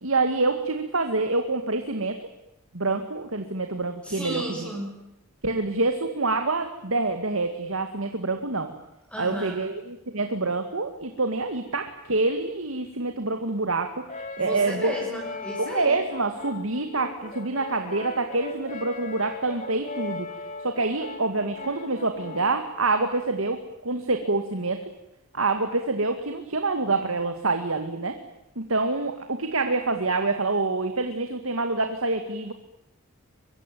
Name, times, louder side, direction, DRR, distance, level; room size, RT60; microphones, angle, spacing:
voice 1, 0.0-2.1 2.7-4.7 5.4-8.7 9.2-14.9 15.6-20.3 20.6-24.8 25.3-28.2 28.6-32.5, right 3 dB, 80° right, 6 dB, 2.2 m, -26 dB
voice 2, 4.0-4.9 9.1-9.6 14.4-16.0, equal, 5° left, -1 dB, 6.3 m, -33 dB
Brass instrument, 14.1-22.6, left 3 dB, 35° left, 3.6 m, -38 dB
24.0 x 23.0 x 9.2 m, 0.87 s
head